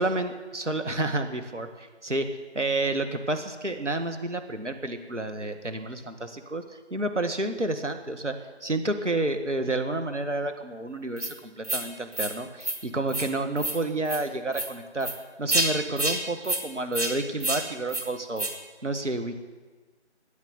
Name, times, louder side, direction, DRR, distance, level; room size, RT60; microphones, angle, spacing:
voice 1, 0.0-2.3 2.5-8.4 8.6-15.1 15.4-18.5 18.8-19.4, right 2 dB, 80° right, 6 dB, 2.0 m, -30 dB
sound 1, 11.2-11.3 11.6-11.8 12.1-12.3 12.6-12.8 13.1-13.3 13.6-13.8 14.1-14.2 14.5-14.7 15.0-15.2 15.5-15.7 16.0-16.2 16.4-16.6 16.9-17.1 17.4-17.6 17.9-18.0 18.4-18.5, right 2 dB, 35° right, 1.7 m, -28 dB
14.0 x 9.9 x 9.4 m, 1.3 s
figure-of-eight pair, 165°, 35 cm